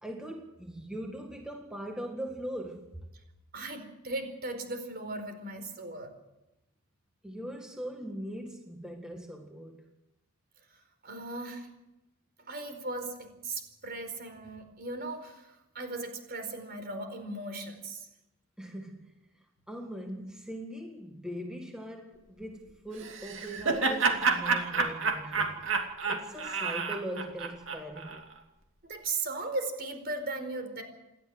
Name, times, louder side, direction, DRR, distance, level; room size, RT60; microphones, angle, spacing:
voice 1, 0.0-2.9 7.2-9.9 18.6-19.1 19.7-28.3, right 1 dB, 5° right, 1.7 m, -41 dB
voice 2, 3.5-6.1 11.0-11.7 12.5-18.1 28.8-30.8, right 2 dB, 45° right, 4.6 m, -37 dB
Laughter, 23.0-28.2, right 4 dB, 65° right, 2.6 m, -29 dB
28.5 x 12.5 x 7.9 m
head